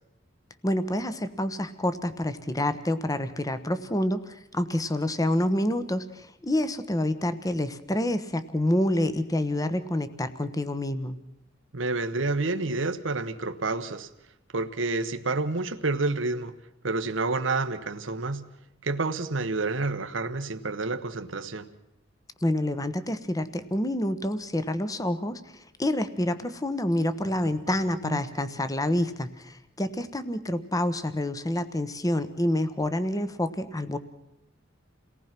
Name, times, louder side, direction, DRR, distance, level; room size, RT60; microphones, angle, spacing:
voice 1, 0.6-11.2 22.4-25.4 25.8-34.0, left 1 dB, 20° left, 1.1 m, -28 dB
voice 2, 11.7-14.1 14.5-16.5 16.8-18.5 18.8-21.7 27.4-27.7 28.0-28.2, right 3 dB, 75° right, 1.1 m, -29 dB
28.5 x 18.5 x 6.0 m
head